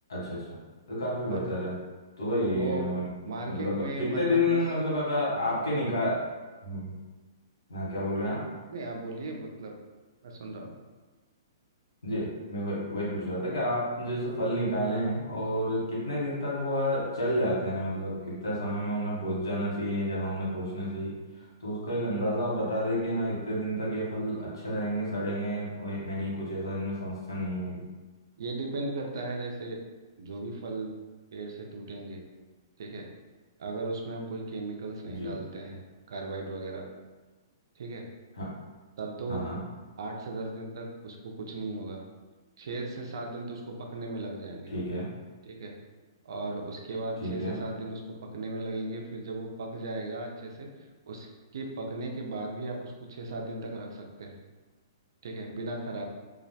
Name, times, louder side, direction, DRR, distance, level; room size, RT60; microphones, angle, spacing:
voice 1, 0.1-0.5 0.9-1.7 2.2-3.1 3.4-6.3 6.6-7.0 7.7-8.4 12.0-27.8 35.0-35.4 38.4-38.5 39.3-39.6 44.7-45.1 47.2-47.6, equal, 90° left, -5 dB, 1.0 m, -30 dB
voice 2, 2.5-2.9 3.3-4.6 8.7-9.7 10.2-10.7 26.2-26.3 28.4-29.8 30.2-30.9 31.3-32.2 32.8-33.1 33.6-35.8 36.1-36.8 37.8-38.1 39.0-39.5 40.0-42.0 42.6-44.7 45.4-45.7 46.2-50.7 51.1-54.3 55.2-56.1, right 2 dB, 70° right, 1 dB, 0.4 m, -36 dB
2.3 x 2.0 x 2.7 m, 1.3 s
hypercardioid pair, 135°, 2 cm